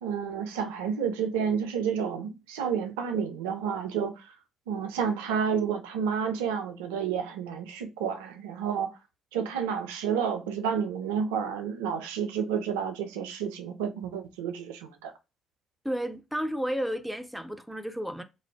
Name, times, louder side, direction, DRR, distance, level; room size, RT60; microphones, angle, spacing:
voice 1, 0.0-4.4 4.7-9.0 9.3-15.1, right 7 dB, 75° right, 0.4 m, -30 dB
voice 2, 15.8-18.2, equal, ahead, 0.5 m, -32 dB
2.5 x 2.1 x 3.3 m
figure-of-eight pair, 45°, 0 cm